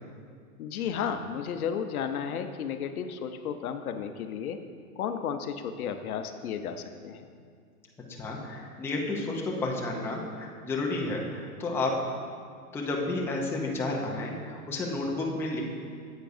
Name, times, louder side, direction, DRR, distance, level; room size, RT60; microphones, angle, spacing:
voice 1, 0.6-4.6 5.0-7.2, left 7 dB, 70° left, 8 dB, 0.7 m, -33 dB
voice 2, 8.2-12.0 12.7-15.6, left 2 dB, 5° left, -2 dB, 0.5 m, -31 dB
9.8 x 8.2 x 2.6 m, 2.1 s
hypercardioid pair, 125°, 46 cm